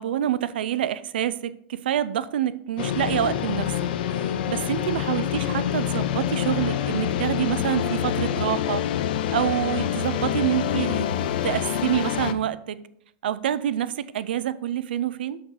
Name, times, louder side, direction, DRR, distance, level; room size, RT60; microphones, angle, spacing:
voice 1, 0.0-3.7 4.1-8.9 9.3-11.1 11.4-12.9 13.2-15.4, right 11 dB, 85° right, 0.5 m, -27 dB
sound 1, 2.8-12.3, left 10 dB, 70° left, 0.6 m, -26 dB
6.3 x 6.1 x 4.9 m
supercardioid pair, 165°, 5 cm